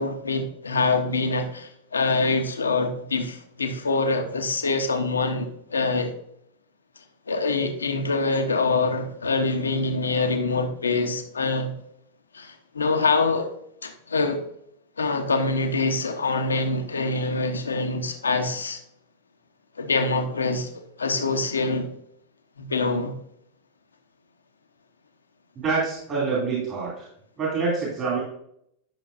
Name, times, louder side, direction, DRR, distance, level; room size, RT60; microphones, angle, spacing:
voice 1, 0.0-6.1 7.3-11.7 12.3-13.5 13.8-14.4 15.0-18.8 19.8-20.7 21.0-21.9 22.6-23.1, left 3 dB, 75° left, 6 dB, 1.1 m, -25 dB
voice 2, 25.6-27.1 27.4-28.2, right 4 dB, 30° right, -4 dB, 2.8 m, -26 dB
10.5 x 6.4 x 2.7 m, 0.72 s
figure-of-eight pair, 90°, 0 cm